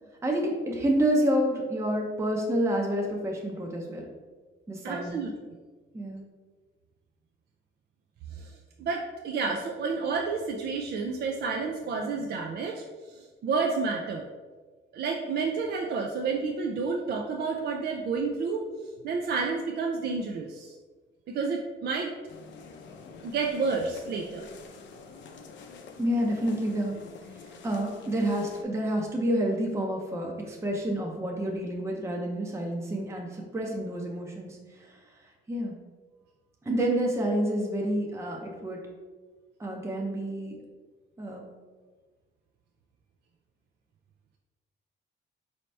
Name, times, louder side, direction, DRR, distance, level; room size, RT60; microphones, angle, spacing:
voice 1, 0.2-4.1 4.7-5.2 5.9-6.2 26.0-35.2 35.5-35.8 36.6-38.8 39.6-40.6 41.2-41.5, right 1 dB, 15° right, 0 dB, 0.6 m, -29 dB
voice 2, 4.8-5.3 8.3-8.5 8.8-12.8 13.1-14.2 14.9-18.6 19.0-20.7 21.3-22.1 23.2-24.4, right 4 dB, 55° right, 1 dB, 0.4 m, -30 dB
sound 1, 22.3-28.6, left 5 dB, 65° left, 0.5 m, -47 dB
4.3 x 2.8 x 3.2 m, 1.4 s
cardioid pair, 90°, 20 cm